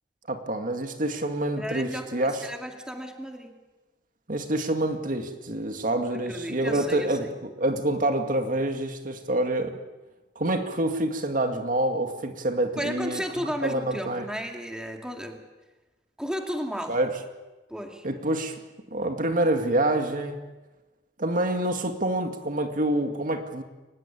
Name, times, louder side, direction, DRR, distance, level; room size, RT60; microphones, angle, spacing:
voice 1, 0.3-2.5 4.3-9.7 10.4-13.2 13.6-14.3 16.9-17.1 18.0-18.6 18.9-20.4 21.2-23.6, right 1 dB, 50° right, 6 dB, 2.2 m, -27 dB
voice 2, 1.6-3.6 6.1-7.3 12.8-15.4 16.2-17.0 17.7-18.1, equal, 5° right, 3 dB, 2.3 m, -34 dB
24.0 x 20.0 x 8.7 m, 1.1 s
head